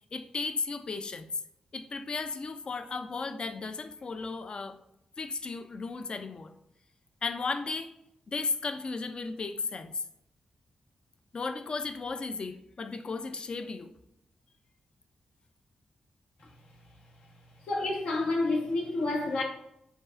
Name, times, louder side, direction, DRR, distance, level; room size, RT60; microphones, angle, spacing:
voice 1, 0.1-1.3 1.7-4.8 5.2-6.5 7.2-7.9 8.3-10.0 11.3-13.9, left 4 dB, 40° left, 0.3 m, -35 dB
voice 2, 17.6-19.4, left 2 dB, 80° left, 1.1 m, -29 dB
5.2 x 4.0 x 2.4 m
wide cardioid pair, 115°, 2 cm